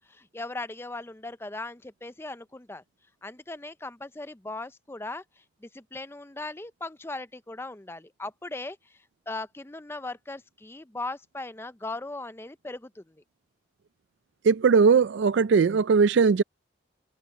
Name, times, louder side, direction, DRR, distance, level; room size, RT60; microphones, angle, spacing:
voice 1, 0.1-2.8 3.2-9.0 9.3-13.2, left 2 dB, 10° left, 0.5 m, -38 dB
voice 2, 14.4-16.4, right 5 dB, 60° right, 0.4 m, -19 dB
head